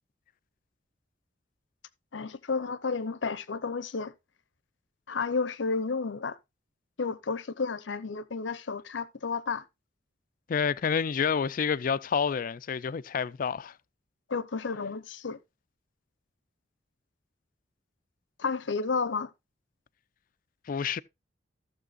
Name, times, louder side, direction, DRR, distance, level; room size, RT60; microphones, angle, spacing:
voice 1, 2.1-4.1 5.1-6.4 7.0-9.6 14.3-15.4 18.4-19.3, left 4 dB, 80° left, 0.8 m, -31 dB
voice 2, 10.5-13.7 20.7-21.0, left 6 dB, 45° left, 0.4 m, -28 dB
15.0 x 7.0 x 2.4 m
head